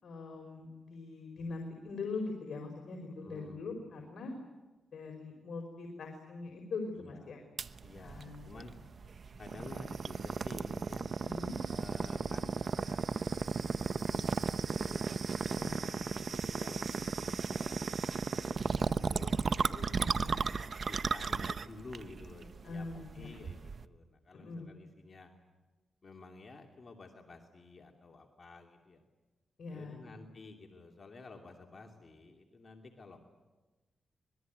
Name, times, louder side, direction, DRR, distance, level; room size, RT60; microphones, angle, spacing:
voice 1, 0.0-4.3 4.9-7.4 8.0-8.6 9.5-9.6 11.2-11.5 15.6-15.8 20.0-20.4 22.6-23.3 24.3-24.7 29.6-30.0, left 3 dB, 70° left, 2 dB, 4.6 m, -42 dB
voice 2, 3.2-3.7 7.0-7.4 7.8-8.7 9.4-11.1 11.7-13.5 13.8-15.1 15.8-17.8 18.3-19.9 20.9-25.3 26.0-29.0 29.7-33.2, left 3 dB, 45° left, 2 dB, 2.8 m, -52 dB
sound 1, 7.6-23.9, right 5 dB, 55° right, 0.9 m, -35 dB
25.5 x 21.0 x 9.3 m, 1.2 s
cardioid pair, 75°, 0 cm